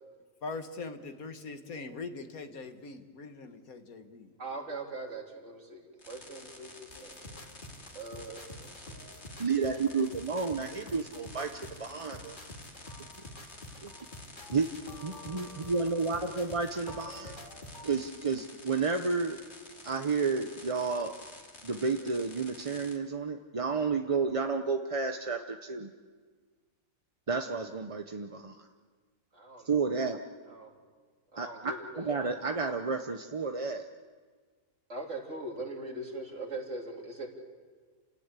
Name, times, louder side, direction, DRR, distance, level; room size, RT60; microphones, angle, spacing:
voice 1, 0.4-4.3, left 3 dB, 80° left, 7 dB, 2.0 m, -42 dB
voice 2, 4.4-7.2 7.9-8.9 29.3-30.0 30.5-30.7 31.3-32.4 34.9-37.3, right 2 dB, 55° right, 1 dB, 3.5 m, -41 dB
sound 1, 6.0-23.0, left 2 dB, 50° left, 2.8 m, -51 dB
sound 2, 6.9-17.9, left 1 dB, 35° left, 2.7 m, -48 dB
voice 3, 9.4-12.4 13.8-13.9 14.5-14.7 15.0-17.4 17.8-19.4 19.8-21.2 21.6-25.9 27.3-28.7 29.6-30.2 31.4-33.9, right 4 dB, 30° right, 5 dB, 0.7 m, -31 dB
29.0 x 18.0 x 8.3 m, 1.5 s
omnidirectional pair, 1.5 m